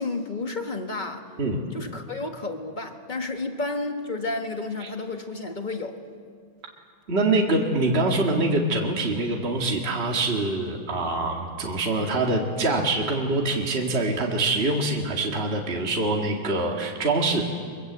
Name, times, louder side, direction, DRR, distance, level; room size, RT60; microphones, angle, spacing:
voice 1, 0.0-1.3 1.7-6.0, left 3 dB, 25° left, 5 dB, 1.5 m, -31 dB
voice 2, 7.1-17.4, right 2 dB, 30° right, 0 dB, 2.2 m, -24 dB
25.0 x 22.5 x 8.2 m, 2.1 s
omnidirectional pair, 2.2 m